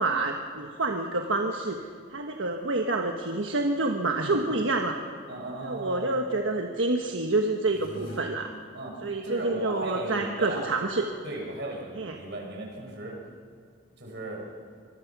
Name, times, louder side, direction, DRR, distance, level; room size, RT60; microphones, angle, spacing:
voice 1, 0.0-1.8 2.1-5.0 5.6-8.5 9.0-11.1 12.0-12.2, right 2 dB, 85° right, 3 dB, 1.4 m, -28 dB
voice 2, 5.3-6.1 8.7-8.9 9.2-10.7 11.2-13.2 14.0-14.4, right 2 dB, 65° right, 0 dB, 6.6 m, -36 dB
sound 1, 7.6-8.2, left 1 dB, 75° left, 5.4 m, -42 dB
25.0 x 22.5 x 6.1 m, 2.1 s
head